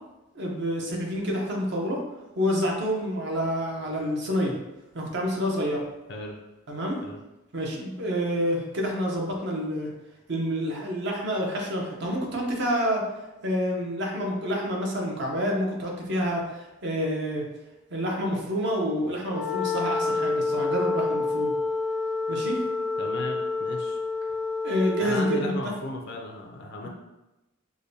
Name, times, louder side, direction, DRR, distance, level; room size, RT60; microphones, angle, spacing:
voice 1, 0.3-2.0 2.4-4.5 4.9-5.8 6.7-7.0 7.5-9.9 10.3-13.0 13.4-17.5 17.9-21.5 22.3-22.6 24.6-25.7, equal, 60° right, -1 dB, 0.8 m, -28 dB
Wind instrument woodwind instrument, 19.2-25.5, left 3 dB, ahead, 0.4 m, -28 dB
voice 2, 23.0-24.0 25.0-26.9, left 2 dB, 55° left, 1 dB, 0.4 m, -35 dB
4.8 x 2.2 x 2.7 m, 1.0 s
head